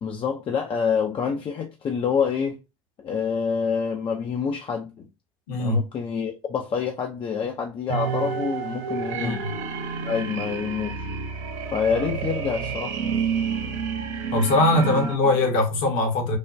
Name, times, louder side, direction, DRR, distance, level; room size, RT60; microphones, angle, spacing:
voice 1, 0.0-2.6 3.0-5.1 5.6-9.4 10.0-11.2 11.7-13.0 14.8-15.0, left 6 dB, 30° left, 0.5 m, -27 dB
voice 2, 5.5-5.8 9.1-9.5 14.3-16.4, left 2 dB, 55° left, 1.0 m, -21 dB
sound 1, 7.9-15.2, right 6 dB, 65° right, 0.7 m, -29 dB
3.3 x 2.2 x 2.5 m
figure-of-eight pair, 70°, 17 cm